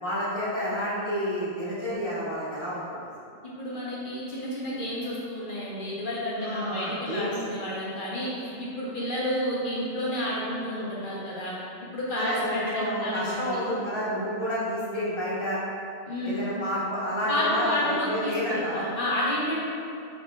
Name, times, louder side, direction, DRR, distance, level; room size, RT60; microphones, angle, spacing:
voice 1, 0.0-3.1 6.4-7.3 12.1-15.6 16.2-18.9, equal, 25° left, -10 dB, 1.0 m, -30 dB
voice 2, 3.6-11.5 11.9-13.7 16.1-16.4 17.3-19.6, left 1 dB, 50° left, -7 dB, 0.9 m, -30 dB
5.4 x 3.4 x 2.2 m, 2.7 s
omnidirectional pair, 1.2 m